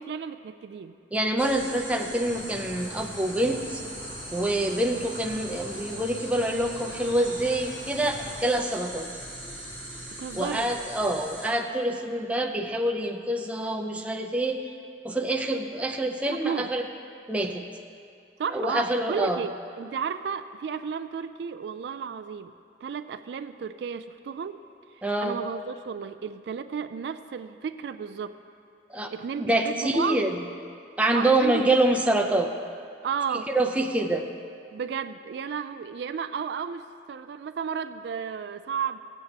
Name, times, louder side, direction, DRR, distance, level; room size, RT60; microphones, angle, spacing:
voice 1, 0.0-0.9 10.2-10.7 16.3-16.7 18.4-22.5 22.8-24.6 24.9-28.4 29.1-30.2 31.1-31.8 33.0-33.5 34.7-39.0, right 6 dB, 65° right, 11 dB, 0.3 m, -33 dB
voice 2, 1.1-3.8 4.3-9.1 10.4-14.6 15.0-16.8 17.3-17.6 18.5-19.4 25.0-25.4 28.9-29.1 29.4-30.3 31.0-32.5 33.5-34.3, right 1 dB, 5° right, 2 dB, 0.5 m, -26 dB
sound 1, 1.4-11.5, right 1 dB, 10° left, 1.4 m, -40 dB
sound 2, 2.2-8.4, equal, 70° left, 1.6 m, -44 dB
16.5 x 8.1 x 2.9 m, 2.4 s
head